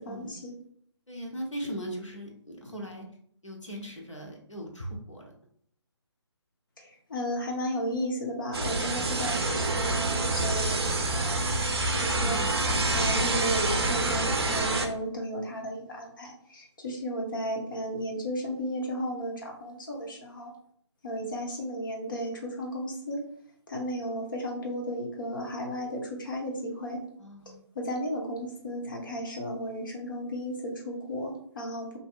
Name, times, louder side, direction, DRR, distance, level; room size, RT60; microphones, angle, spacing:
voice 1, 0.1-0.6 6.8-12.4 12.9-20.5 21.0-23.2 23.7-27.0 27.7-32.0, equal, 45° left, 0 dB, 0.8 m, -34 dB
voice 2, 1.1-3.1 3.4-5.3 12.1-12.9 27.2-27.6, equal, 90° left, 0 dB, 0.9 m, -39 dB
sound 1, 8.5-14.9, right 2 dB, 55° right, 0.5 m, -27 dB
2.8 x 2.6 x 2.4 m, 0.64 s
figure-of-eight pair, 145°, 15 cm